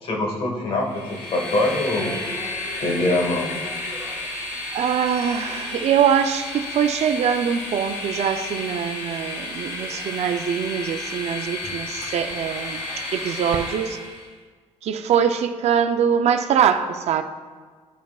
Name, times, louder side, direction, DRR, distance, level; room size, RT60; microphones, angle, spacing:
voice 1, 0.0-2.2 2.8-3.5, left 2 dB, 50° left, 0 dB, 1.5 m, -23 dB
Train, 0.8-14.3, left 2 dB, 85° left, 2.4 m, -32 dB
voice 2, 4.7-12.8 13.1-14.0 14.8-17.2, right 8 dB, 60° right, 8 dB, 0.5 m, -23 dB
13.0 x 5.8 x 2.4 m, 1.5 s
cardioid pair, 125°, 12 cm